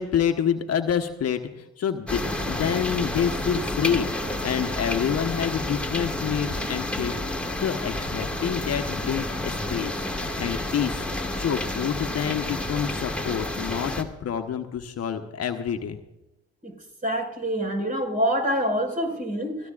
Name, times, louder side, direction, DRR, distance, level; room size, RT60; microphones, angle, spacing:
voice 1, 0.0-2.2 2.5-4.1 4.4-16.0, left 8 dB, 50° left, 1.2 m, -28 dB
sound 1, 2.1-14.0, left 1 dB, 5° left, 2.1 m, -30 dB
voice 2, 17.0-19.7, equal, 25° right, 5.3 m, -26 dB
22.5 x 15.0 x 2.5 m
hypercardioid pair, 60°, 31 cm